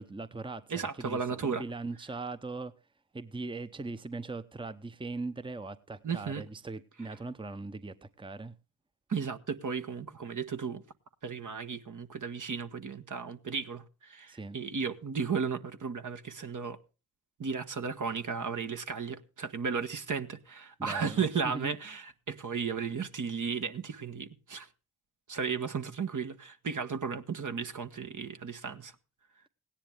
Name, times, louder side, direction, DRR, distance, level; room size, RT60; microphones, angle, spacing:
voice 1, 0.0-2.7 3.1-8.5 14.3-14.6 20.8-21.3 21.5-21.7, right 3 dB, 15° right, 0.9 m, -40 dB
voice 2, 0.7-1.6 6.0-6.4 9.1-10.8 11.2-16.8 17.4-24.7 25.3-28.9, right 5 dB, 50° right, 1.3 m, -34 dB
16.5 x 10.0 x 3.5 m
supercardioid pair, 40°, 39 cm